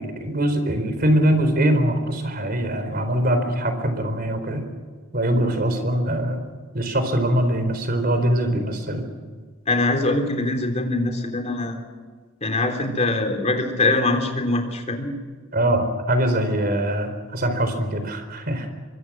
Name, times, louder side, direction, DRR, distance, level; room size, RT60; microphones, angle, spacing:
voice 1, 0.0-4.6 5.1-6.4 6.7-9.0 15.5-18.7, right 1 dB, 45° right, 8 dB, 4.3 m, -22 dB
voice 2, 9.7-11.8 12.4-15.1, left 2 dB, 35° left, 4 dB, 3.7 m, -23 dB
25.0 x 23.5 x 6.3 m, 1.5 s
head